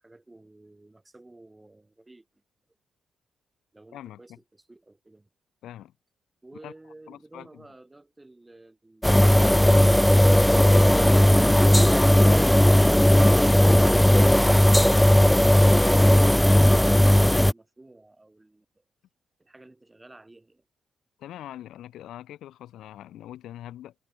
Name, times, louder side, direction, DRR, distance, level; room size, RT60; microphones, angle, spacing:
voice 1, 0.0-2.4 3.7-5.3 6.4-11.6 15.1-18.8 19.4-20.7, right 2 dB, 15° right, 6.2 m, -53 dB
voice 2, 5.6-5.9 6.6-6.7 7.1-7.6 21.2-23.9, left 12 dB, 85° left, 2.4 m, -42 dB
sound 1, 9.0-17.5, left 1 dB, 5° left, 0.3 m, -17 dB
cardioid pair, 80°, 0 cm